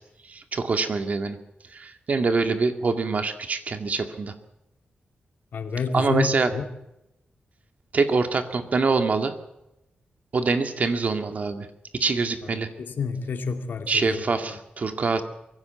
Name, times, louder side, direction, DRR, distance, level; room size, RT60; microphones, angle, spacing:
voice 1, 0.3-1.4 1.7-4.3 5.9-6.5 7.9-9.3 10.3-11.7 11.9-12.7 13.9-15.2, right 4 dB, 50° right, 7 dB, 2.2 m, -24 dB
voice 2, 5.5-6.6 12.4-14.3, left 5 dB, 80° left, 6 dB, 2.6 m, -29 dB
23.0 x 16.0 x 8.3 m, 0.88 s
wide cardioid pair, 120°, 3 cm